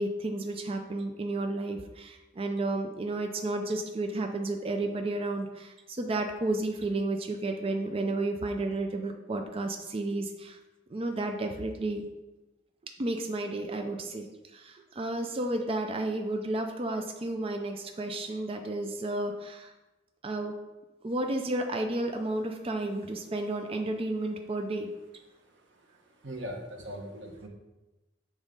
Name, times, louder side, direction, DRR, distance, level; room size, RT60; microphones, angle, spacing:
voice 1, 0.0-10.6 10.9-12.0 13.0-14.3 14.5-19.7 20.2-20.5 21.0-24.9, right 2 dB, 30° right, 4 dB, 0.5 m, -32 dB
voice 2, 26.0-27.5, equal, 85° right, 2 dB, 1.2 m, -40 dB
7.3 x 3.6 x 5.2 m, 1.1 s
head